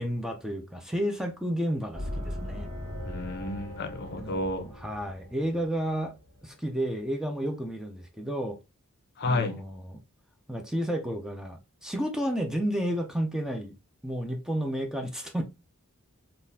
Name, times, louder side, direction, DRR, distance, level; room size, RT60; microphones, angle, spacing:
voice 1, 0.0-2.7 4.2-6.1 6.4-8.6 9.2-10.0 10.5-13.7 14.0-15.4, equal, 5° right, 0.5 m, -31 dB
sound 1, 1.9-6.7, left 1 dB, 75° right, 1.1 m, -39 dB
voice 2, 3.0-4.7 9.2-9.6, left 2 dB, 50° left, 0.6 m, -31 dB
3.7 x 2.4 x 2.6 m
head